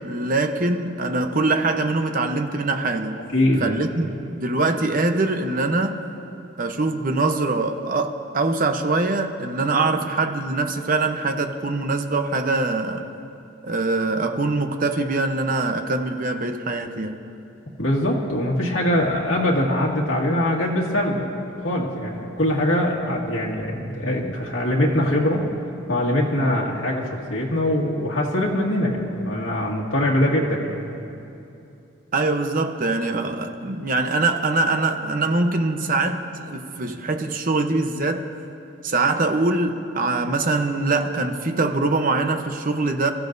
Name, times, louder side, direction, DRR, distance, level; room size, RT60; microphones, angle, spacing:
voice 1, 0.0-3.2 3.6-6.1 6.6-13.1 13.6-17.2 32.1-38.3 38.8-43.1, right 3 dB, 45° right, 6 dB, 0.8 m, -23 dB
voice 2, 3.3-3.8 17.8-21.4 21.6-25.4 25.9-30.8, left 1 dB, 80° left, -3 dB, 1.9 m, -22 dB
28.5 x 14.0 x 2.7 m, 2.7 s
head